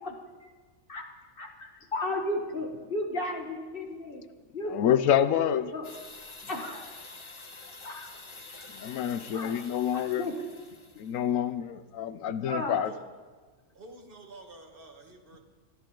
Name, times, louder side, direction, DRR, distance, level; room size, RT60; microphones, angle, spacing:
voice 1, 1.4-4.2 4.5-5.0 5.3-5.9 6.5-6.9 7.8-8.1 8.6-8.7 9.3-9.5 9.9-10.3 12.5-12.8, left 1 dB, 45° left, 2 dB, 1.7 m, -34 dB
voice 2, 4.7-5.7 8.7-10.3 11.0-12.9, left 10 dB, 85° left, 13 dB, 1.1 m, -27 dB
sound 1, 5.8-11.2, left 3 dB, 25° left, 0.8 m, -47 dB
voice 3, 13.7-15.4, right 2 dB, 45° right, 3 dB, 1.7 m, -48 dB
24.0 x 11.5 x 3.8 m, 1.4 s
omnidirectional pair, 1.4 m